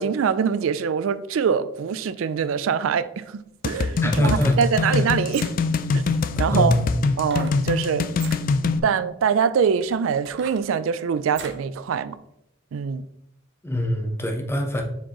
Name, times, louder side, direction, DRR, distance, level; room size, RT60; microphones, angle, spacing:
voice 1, 0.0-5.5 5.9-6.0 6.4-6.7 7.2-8.1 8.8-12.2 12.7-13.1, right 6 dB, 90° right, 0.4 m, -24 dB
sound 1, 3.6-8.8, left 4 dB, 45° left, 0.3 m, -24 dB
voice 2, 4.0-4.5 6.5-6.9 13.6-14.8, left 1 dB, 10° left, 0.7 m, -23 dB
sound 2, 4.2-4.7 5.2-5.8 7.2-7.6 8.1-8.4 9.1-9.2 9.8-11.7 12.1-12.2, right 6 dB, 60° right, 0.8 m, -40 dB
6.9 x 4.6 x 3.0 m
head